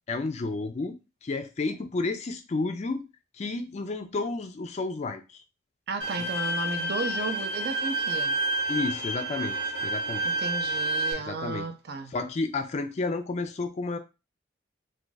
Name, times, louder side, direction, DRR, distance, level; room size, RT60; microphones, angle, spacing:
voice 1, 0.1-3.0 3.3-5.4 8.7-10.2 11.3-11.7 12.1-14.0, left 3 dB, 35° left, 0.3 m, -31 dB
voice 2, 5.9-8.4 10.2-12.1, right 4 dB, 55° right, 0.5 m, -34 dB
Bowed string instrument, 6.0-11.1, right 2 dB, 80° right, 1.0 m, -29 dB
2.5 x 2.4 x 3.8 m
head